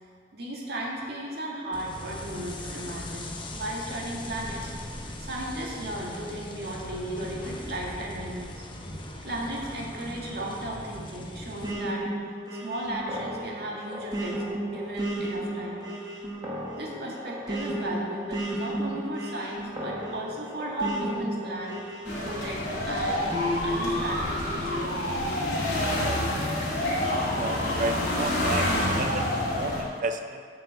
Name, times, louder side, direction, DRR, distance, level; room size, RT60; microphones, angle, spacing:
voice 1, 0.3-8.6 9.2-12.1 12.6-14.4 14.7-15.9 16.8-23.3 23.6-25.4, right 1 dB, 65° right, -3 dB, 2.0 m, -35 dB
sound 1, 1.7-11.7, left 1 dB, 30° left, 0.9 m, -39 dB
sound 2, 11.6-22.7 23.3-24.8, equal, 20° right, 1.4 m, -33 dB
sound 3, 22.0-29.8, left 1 dB, 80° left, 2.2 m, -28 dB
voice 2, 27.3-29.3 29.5-30.4, right 2 dB, 45° right, 6 dB, 0.5 m, -32 dB
7.5 x 6.9 x 6.9 m, 2.1 s
head